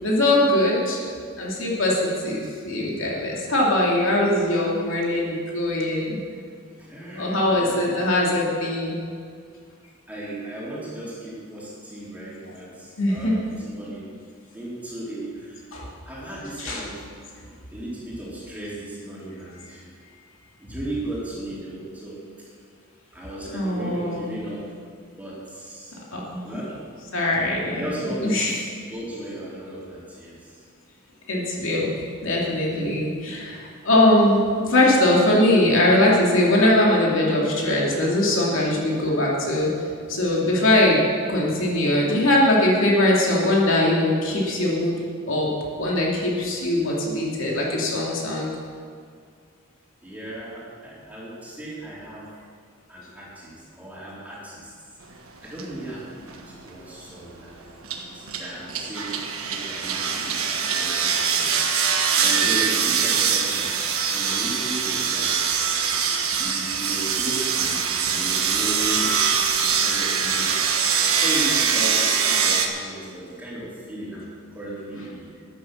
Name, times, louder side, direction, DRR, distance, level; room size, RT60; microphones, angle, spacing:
voice 1, 0.0-1.0 1.4-6.2 7.1-9.0 13.0-13.4 15.7-15.9 16.6-16.8 23.5-24.2 26.1-26.6 27.1-27.9 28.2-28.5 31.3-31.9 32.2-39.7 40.1-41.0 41.3-45.0 45.3-45.5 45.8-48.5, left 1 dB, 65° left, -3 dB, 2.8 m, -21 dB
voice 2, 6.8-7.9 10.1-14.1 14.5-15.6 16.1-17.1 17.4-19.9 20.6-22.2 23.1-24.7 25.2-26.0 26.4-26.8 27.7-30.6 50.0-52.3 52.9-54.7 55.1-59.2 59.5-61.6 62.2-65.5 66.4-69.1 69.5-70.6 71.1-75.4, right 1 dB, 5° right, -7 dB, 3.6 m, -36 dB
sound 1, 55.6-55.7 56.2-56.6 57.8-72.7, right 6 dB, 80° right, 1.4 m, -23 dB
13.5 x 10.0 x 6.5 m, 2.2 s
head